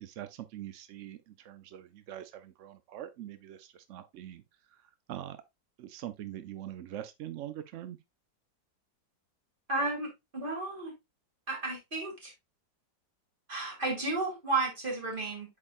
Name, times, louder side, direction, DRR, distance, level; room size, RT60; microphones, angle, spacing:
voice 1, 0.0-4.4 4.7-5.4 5.8-8.0, right 11 dB, 75° right, 0.6 m, -43 dB
voice 2, 9.7-10.9 11.5-12.3 13.5-15.6, right 3 dB, 25° right, 2.7 m, -33 dB
8.5 x 4.9 x 2.5 m
omnidirectional pair, 2.0 m